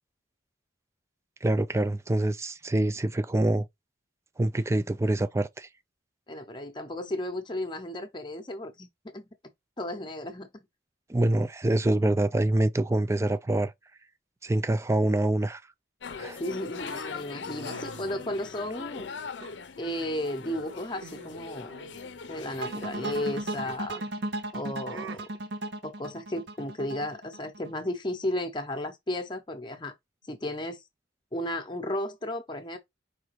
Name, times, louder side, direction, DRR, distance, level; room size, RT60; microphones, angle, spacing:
voice 1, 1.4-3.7 4.4-5.7 11.1-13.7 14.4-15.6 16.2-16.4, right 1 dB, 15° right, 0.3 m, -25 dB
voice 2, 6.3-9.3 9.8-10.7 16.4-19.1 19.8-21.8 22.3-24.0 24.5-25.3 25.8-29.9 30.3-30.8 31.3-32.8, left 1 dB, 25° left, 0.7 m, -34 dB
sound 1, 16.0-23.8, left 5 dB, 70° left, 0.6 m, -41 dB
sound 2, 16.8-18.9 19.4-20.2 20.5-20.7 21.0-21.4 21.7-24.1 24.8-25.2, right 5 dB, 90° right, 0.6 m, -47 dB
sound 3, 22.6-27.7, right 2 dB, 75° right, 0.9 m, -35 dB
5.0 x 3.4 x 3.1 m
head